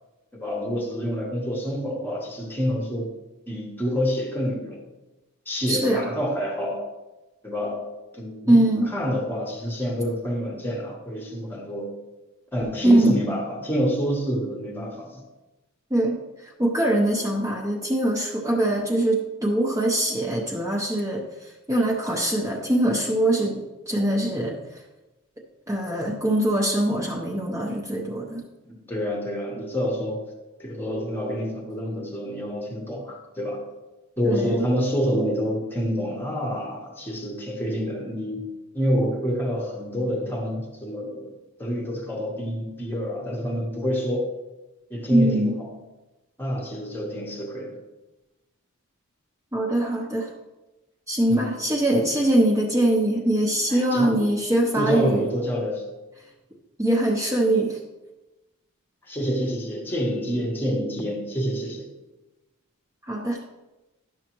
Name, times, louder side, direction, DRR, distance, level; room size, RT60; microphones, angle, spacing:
voice 1, 0.3-3.2 3.5-4.8 5.5-6.9 7.4-12.0 12.5-15.2 28.7-30.3 30.6-33.7 34.2-44.4 44.9-45.7 46.4-47.8 51.3-51.6 53.7-54.3 54.8-55.9 59.1-61.9, equal, 10° left, 0.9 m, -28 dB
voice 2, 5.7-6.1 8.5-8.9 12.8-13.1 15.9-16.2 16.4-24.6 25.7-28.4 34.2-34.7 45.1-45.5 49.5-50.3 51.1-55.3 56.8-57.8 63.1-63.4, right 1 dB, 15° right, 0.7 m, -22 dB
11.0 x 6.3 x 3.0 m
head